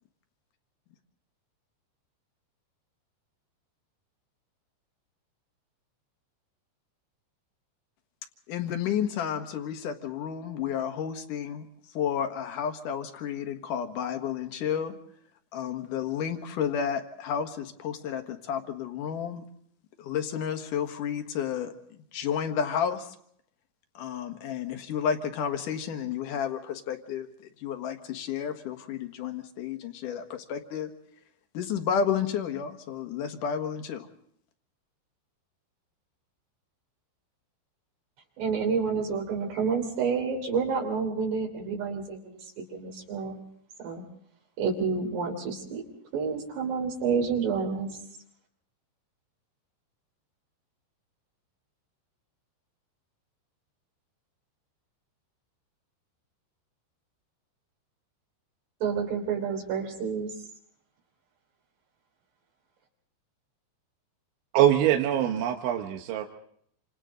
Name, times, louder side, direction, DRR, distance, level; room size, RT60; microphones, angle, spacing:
voice 1, 8.5-11.7 11.9-14.9 15.5-19.4 20.0-23.1 23.9-27.3 27.6-30.9 31.5-34.1, left 8 dB, 60° left, 6 dB, 2.5 m, -31 dB
voice 2, 38.4-43.4 43.8-44.0 44.6-45.8 46.1-47.9 58.8-60.3, right 5 dB, 65° right, 0 dB, 5.5 m, -29 dB
voice 3, 64.5-66.3, right 11 dB, 80° right, 3 dB, 3.6 m, -23 dB
28.5 x 27.0 x 3.9 m, 0.67 s
omnidirectional pair, 5.3 m